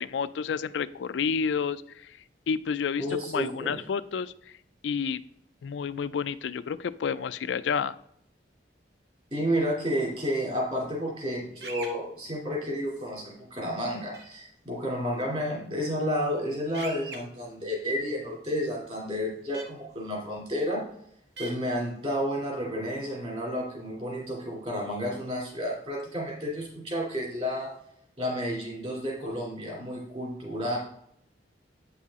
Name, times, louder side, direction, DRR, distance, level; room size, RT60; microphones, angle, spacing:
voice 1, 0.0-2.2 2.5-4.3 4.8-5.2 5.6-8.0, left 6 dB, 85° left, 14 dB, 0.4 m, -30 dB
voice 2, 2.9-3.8 9.3-20.8 21.4-27.7 28.2-30.8, equal, 35° right, -3 dB, 2.8 m, -31 dB
sound 1, 11.6-11.9 14.1-14.2 16.7-17.2 19.5-19.6 21.4-21.5, right 3 dB, 65° right, 1.1 m, -39 dB
8.4 x 5.7 x 3.6 m, 0.73 s
head